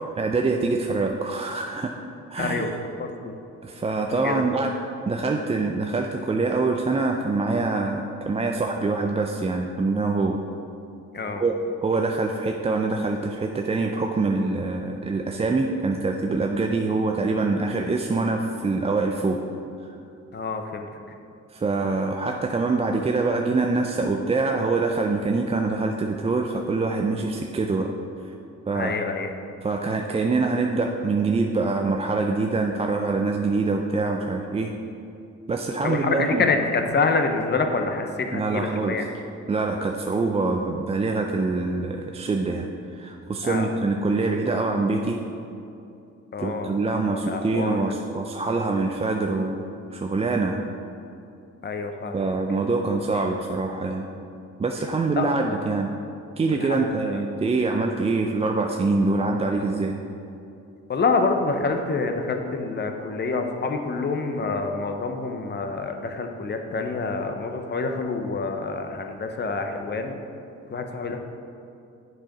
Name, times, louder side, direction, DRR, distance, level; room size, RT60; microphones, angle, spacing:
voice 1, 0.2-1.9 2.3-2.7 3.6-4.7 5.1-10.4 11.4-11.5 11.8-19.4 19.9-20.0 21.5-27.9 28.7-29.0 29.6-34.7 35.5-36.5 38.3-39.0 39.5-45.2 46.4-49.6 49.9-50.7 52.1-54.1 54.6-55.9 56.4-60.0, right 3 dB, 20° right, 2 dB, 0.4 m, -25 dB
voice 2, 2.4-2.7 3.0-3.3 4.2-4.5 11.1-11.4 20.3-20.9 28.7-29.3 35.8-39.1 43.4-43.7 46.3-48.0 51.6-52.3 55.2-55.3 56.5-57.2 60.9-70.2 70.7-71.2, left 4 dB, 35° left, 5 dB, 0.8 m, -27 dB
7.5 x 4.8 x 5.3 m, 2.6 s
cardioid pair, 90°, 30 cm